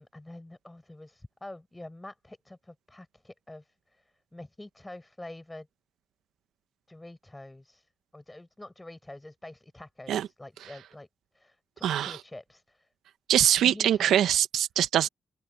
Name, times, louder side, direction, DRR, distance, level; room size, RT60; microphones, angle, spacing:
voice 1, 0.0-5.7 6.9-11.1 11.3-12.9 13.6-14.1, left 1 dB, 15° left, 7.9 m, -46 dB
voice 2, 11.8-12.2 13.3-15.1, right 11 dB, 80° right, 1.4 m, -23 dB
open air
cardioid pair, 70°, 0 cm